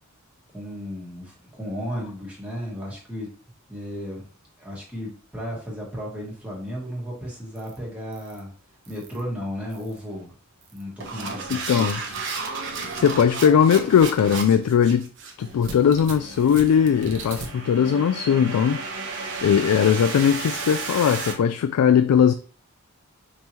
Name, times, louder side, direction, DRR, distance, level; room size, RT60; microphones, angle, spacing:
voice 1, 0.5-3.3 3.7-4.3 4.6-8.5 8.9-10.3 10.7-12.0, equal, 5° right, 1.5 m, -34 dB
sound 1, 7.6-7.8 8.1-8.4 8.8-9.2 9.7-10.0 10.6-21.3, right 4 dB, 55° right, 0.8 m, -33 dB
voice 2, 12.9-15.1 15.4-18.8 19.4-22.3, left 8 dB, 85° left, 0.3 m, -19 dB
5.4 x 3.1 x 2.9 m
head